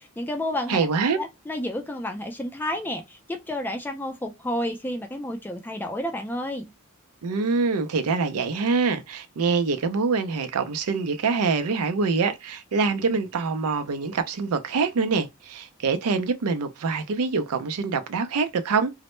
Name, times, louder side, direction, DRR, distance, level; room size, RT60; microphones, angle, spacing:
voice 1, 0.0-0.9 1.2-6.7, left 1 dB, 10° left, 0.3 m, -30 dB
voice 2, 0.7-1.2 7.2-18.9, right 4 dB, 85° right, 0.4 m, -25 dB
2.0 x 2.0 x 2.9 m
head